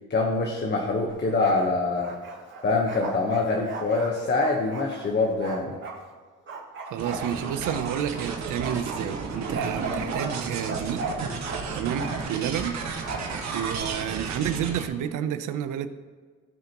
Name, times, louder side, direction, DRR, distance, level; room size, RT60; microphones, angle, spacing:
voice 1, 0.1-2.1 2.6-5.8, left 3 dB, 35° left, 1.2 m, -25 dB
Bark, 1.1-1.7 2.0-6.0 6.5-8.3 8.6-11.6 11.9-12.3 13.0-13.9, right 3 dB, 40° right, 2.0 m, -36 dB
voice 2, 6.8-11.1 11.5-12.8 13.1-15.9, right 9 dB, 85° right, 0.7 m, -30 dB
sound 1, 7.0-14.9, right 5 dB, 65° right, 1.4 m, -33 dB
17.0 x 5.9 x 3.0 m
cardioid pair, 90°, 30 cm